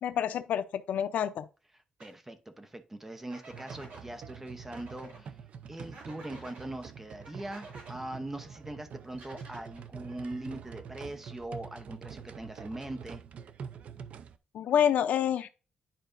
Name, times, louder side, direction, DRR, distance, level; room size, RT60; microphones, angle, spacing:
voice 1, 0.0-1.5 14.5-15.5, left 9 dB, 75° left, 0.5 m, -28 dB
voice 2, 2.0-5.4 5.7-13.2, right 1 dB, 10° right, 0.8 m, -41 dB
sound 1, 2.0-2.1 3.3-4.0 4.7-5.2 5.9-6.7 7.2-7.9 9.1-9.9, right 2 dB, 75° right, 4.1 m, -50 dB
sound 2, 3.5-14.4, right 7 dB, 55° right, 0.5 m, -46 dB
10.0 x 4.9 x 2.6 m
wide cardioid pair, 165°, 3 cm